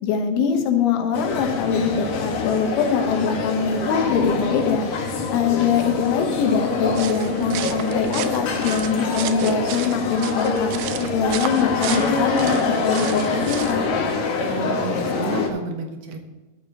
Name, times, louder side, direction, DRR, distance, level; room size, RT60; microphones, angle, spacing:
voice 1, 0.0-4.8 5.3-10.7 11.1-13.9, left 6 dB, 80° left, 4 dB, 3.5 m, -23 dB
sound 1, 1.1-15.5, left 4 dB, 60° left, 1.9 m, -25 dB
sound 2, 6.8-13.9, right 13 dB, 80° right, 2.7 m, -34 dB
voice 2, 14.4-16.2, right 3 dB, 65° right, 4 dB, 2.7 m, -31 dB
13.5 x 11.5 x 2.9 m, 1.2 s
omnidirectional pair, 5.5 m